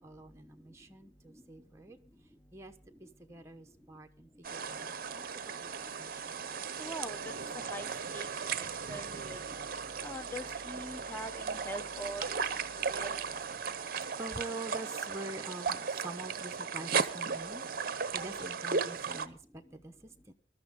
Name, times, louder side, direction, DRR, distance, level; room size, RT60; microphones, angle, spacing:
voice 1, 0.0-2.0 2.5-2.7 3.0-5.7 6.0-6.4 14.2-17.6 18.1-20.3, right 2 dB, 15° right, 4 dB, 1.0 m, -46 dB
sound 1, 4.4-19.3, right 5 dB, 45° right, 0.8 m, -36 dB
voice 2, 6.8-7.2 7.5-9.4 10.0-12.2 12.8-13.2, equal, 10° left, 10 dB, 0.8 m, -43 dB
20.5 x 12.5 x 3.7 m, 0.36 s
head